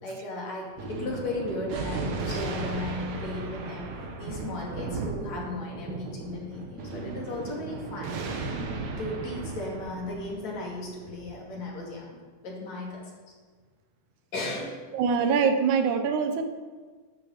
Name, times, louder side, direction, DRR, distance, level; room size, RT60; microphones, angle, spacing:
voice 1, 0.0-3.9 4.2-8.1 9.0-12.1 12.4-13.0 14.3-14.8, left 2 dB, 65° left, -2 dB, 3.6 m, -35 dB
Thunder, 0.7-11.6, right 3 dB, 70° right, 2.4 m, -35 dB
voice 2, 14.9-16.4, right 6 dB, 85° right, 7 dB, 2.4 m, -24 dB
13.0 x 6.5 x 6.4 m, 1.4 s
omnidirectional pair, 3.3 m